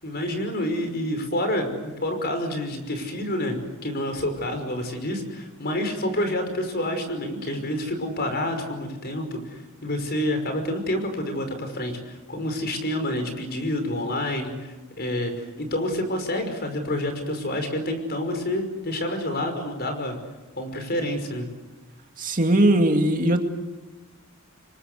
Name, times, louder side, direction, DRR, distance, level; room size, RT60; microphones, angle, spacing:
voice 1, 0.0-3.6 3.8-20.2 20.6-21.5, left 1 dB, 45° left, 6 dB, 5.6 m, -28 dB
voice 2, 22.2-23.4, right 1 dB, 40° right, 4 dB, 2.4 m, -19 dB
28.0 x 24.0 x 8.3 m, 1.2 s
head